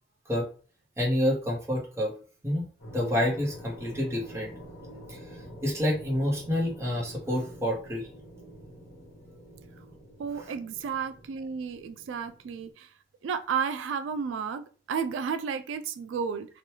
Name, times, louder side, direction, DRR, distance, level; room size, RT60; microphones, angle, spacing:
voice 1, 1.0-2.1 2.4-2.6 2.9-4.5 5.1-5.3 5.6-8.1, left 1 dB, 15° right, -2 dB, 0.8 m, -28 dB
sound 1, 2.8-12.7, equal, 70° left, 1.2 m, -47 dB
voice 2, 10.2-12.9 13.2-16.6, right 6 dB, 85° right, 10 dB, 0.3 m, -32 dB
2.9 x 2.2 x 3.1 m, 0.38 s
head